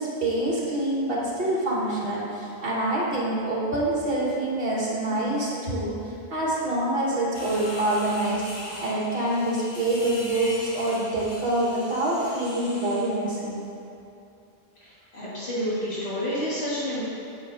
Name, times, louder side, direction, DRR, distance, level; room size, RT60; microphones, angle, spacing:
voice 1, 0.0-6.0 6.3-8.4 8.8-13.6, right 1 dB, 60° right, -6 dB, 1.7 m, -26 dB
sound 1, 7.3-13.2, left 1 dB, 45° left, 1.2 m, -40 dB
voice 2, 14.8-17.0, equal, 75° left, -9 dB, 1.9 m, -29 dB
8.1 x 6.9 x 2.6 m, 2.8 s
omnidirectional pair, 1.1 m